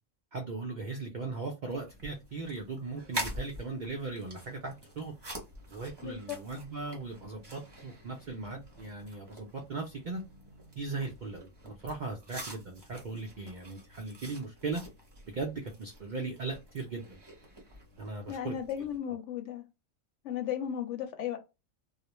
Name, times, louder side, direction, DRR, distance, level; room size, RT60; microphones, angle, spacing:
voice 1, 0.3-5.1 5.7-10.2 10.8-14.8 15.3-17.2 18.0-18.5, right 3 dB, 70° right, 0.4 m, -38 dB
sound 1, 1.7-19.0, right 1 dB, 25° right, 0.6 m, -46 dB
voice 2, 6.0-6.4 18.3-19.6 20.2-21.4, left 9 dB, 70° left, 0.8 m, -35 dB
2.4 x 2.1 x 2.9 m
omnidirectional pair, 1.4 m